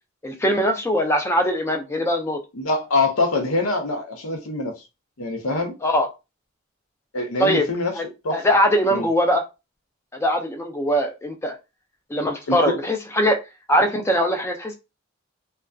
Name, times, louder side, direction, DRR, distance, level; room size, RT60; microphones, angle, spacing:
voice 1, 0.2-2.4 5.8-6.1 7.4-7.6 8.0-8.1 8.3-9.4 10.2-11.6 12.1-13.4 13.7-14.7, equal, 10° left, 0.3 m, -21 dB
voice 2, 2.5-4.7 5.2-5.7 7.1-8.5 8.9-9.1 12.5-12.7, left 3 dB, 85° left, 0.7 m, -24 dB
2.4 x 2.2 x 2.2 m
head